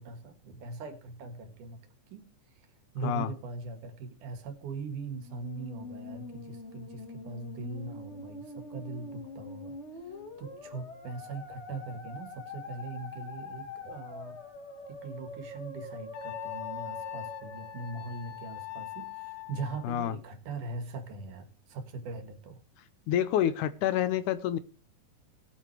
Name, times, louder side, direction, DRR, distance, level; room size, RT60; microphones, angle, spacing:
voice 1, 0.0-1.8 2.1-2.2 2.9-9.8 10.4-14.4 14.9-22.6, right 4 dB, 70° right, 8 dB, 3.1 m, -41 dB
Musical instrument, 5.1-18.5, left 2 dB, 40° left, 0.9 m, -44 dB
Wind instrument woodwind instrument, 16.1-19.9, left 16 dB, 60° left, 1.1 m, -41 dB
voice 2, 19.8-20.2 23.1-24.6, left 11 dB, 80° left, 14 dB, 2.1 m, -28 dB
18.5 x 8.7 x 3.2 m, 0.36 s
omnidirectional pair, 3.7 m